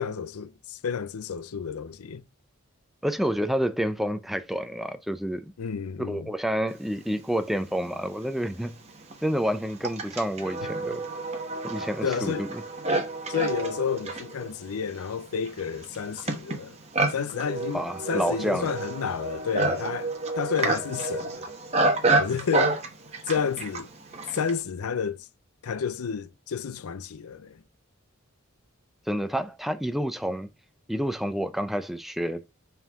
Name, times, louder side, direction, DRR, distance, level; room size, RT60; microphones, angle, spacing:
voice 1, 0.0-2.2 5.6-6.3 10.6-10.7 12.0-12.5 13.3-16.8 17.1-21.4 22.2-22.8 23.3-23.9 24.3-25.3 25.6-27.6, left 6 dB, 85° left, 0.5 m, -31 dB
voice 2, 3.0-5.5 6.0-8.8 9.2-11.0 11.6-12.6 17.7-18.7 29.1-30.5 30.9-32.4, equal, ahead, 0.4 m, -29 dB
Livestock farm animals working animals, 7.8-7.9 8.7-24.6, right 2 dB, 30° right, 1.1 m, -29 dB
5.7 x 4.6 x 3.6 m
head